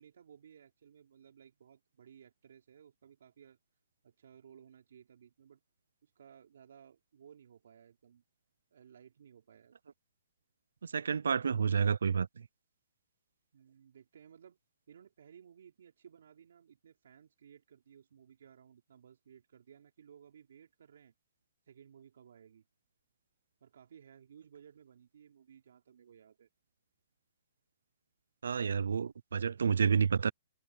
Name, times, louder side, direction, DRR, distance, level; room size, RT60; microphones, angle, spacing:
voice 1, 0.0-3.6 4.0-5.6 6.0-8.2 8.7-9.8 13.5-14.6 14.9-21.1 21.7-22.6 23.6-26.5, right 8 dB, 70° right, 4.5 m, -58 dB
voice 2, 10.9-12.3 28.4-30.3, right 6 dB, 90° right, 0.5 m, -29 dB
hypercardioid pair, 155°, 0 cm